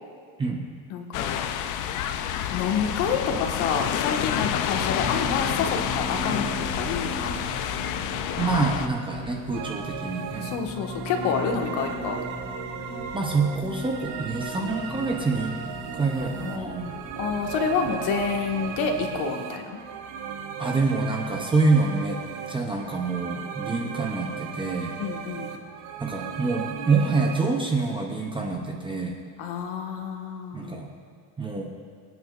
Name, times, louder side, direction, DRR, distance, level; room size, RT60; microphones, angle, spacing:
voice 1, 0.9-1.4 2.5-6.5 6.7-7.4 10.4-12.2 16.3-19.8 25.0-25.6 29.4-30.8, left 5 dB, 85° left, 2 dB, 1.6 m, -28 dB
sound 1, 1.1-8.9, left 10 dB, 40° left, 0.4 m, -28 dB
sound 2, 4.9-19.2, equal, 35° right, 2.7 m, -39 dB
voice 2, 8.4-10.5 13.1-15.6 15.9-16.9 20.6-22.2 22.5-25.0 26.0-29.1 30.5-30.9 31.4-31.7, right 3 dB, 10° right, 0 dB, 0.5 m, -26 dB
sound 3, 9.5-27.4, right 7 dB, 80° right, 1.2 m, -36 dB
24.0 x 9.2 x 2.4 m, 2.2 s
cardioid pair, 180°, 48 cm